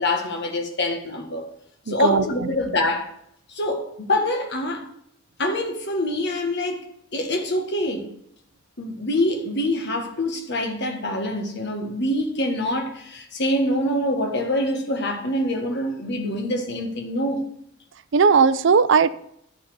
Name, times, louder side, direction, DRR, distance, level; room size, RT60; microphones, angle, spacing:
voice 1, 0.0-1.5 1.9-3.1 3.5-4.8 5.4-6.9 7.1-8.1 8.8-17.4, left 1 dB, 55° left, 1.6 m, -25 dB
voice 2, 1.9-2.3 18.1-19.1, right 5 dB, 65° right, 0.5 m, -17 dB
11.0 x 4.2 x 7.9 m
head